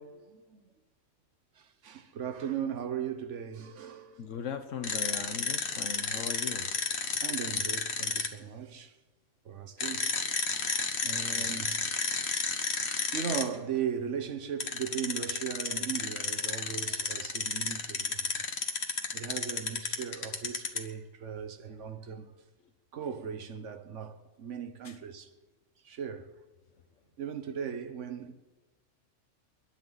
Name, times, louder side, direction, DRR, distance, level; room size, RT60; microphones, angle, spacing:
voice 1, 0.3-0.6 1.6-4.3 6.9-8.9 9.4-10.1 10.5-12.2 13.1-18.3 19.1-22.3 22.9-25.3 25.8-26.3 27.2-28.3, right 8 dB, 75° right, 1.4 m, -38 dB
voice 2, 4.2-6.7 11.4-11.5 24.8-25.0, left 6 dB, 80° left, 1.4 m, -39 dB
sound 1, 4.8-8.3 9.8-13.4 14.6-20.9, left 4 dB, 60° left, 1.5 m, -31 dB
29.5 x 10.5 x 4.0 m
omnidirectional pair, 1.3 m